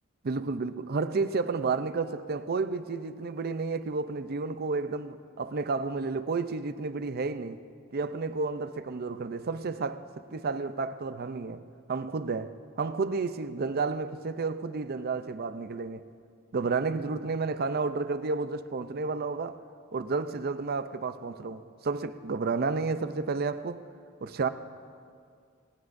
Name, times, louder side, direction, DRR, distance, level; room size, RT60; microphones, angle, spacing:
voice 1, 0.2-7.6 7.9-11.6 11.9-16.1 16.5-19.6 19.9-23.9 24.2-24.5, right 4 dB, 50° right, 0.5 m, -31 dB
19.0 x 18.0 x 2.6 m
head